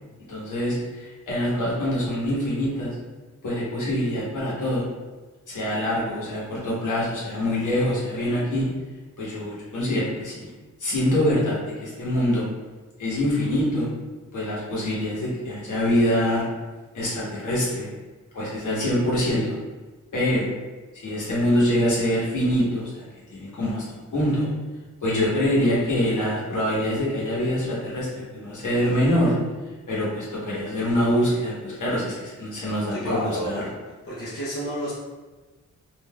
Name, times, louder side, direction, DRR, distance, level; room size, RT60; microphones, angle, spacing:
voice 1, 0.3-2.9 3.4-4.8 5.5-8.7 9.2-10.5 10.8-12.5 13.0-13.9 14.3-16.4 16.9-17.9 18.3-19.5 20.1-20.5 21.0-23.0 23.3-24.5 25.0-29.3 29.9-33.6, left 1 dB, 75° left, -7 dB, 1.1 m, -24 dB
voice 2, 32.9-33.7 34.0-34.9, equal, 50° left, -8 dB, 0.7 m, -30 dB
3.6 x 2.6 x 2.2 m, 1.3 s
wide cardioid pair, 165°, 30 cm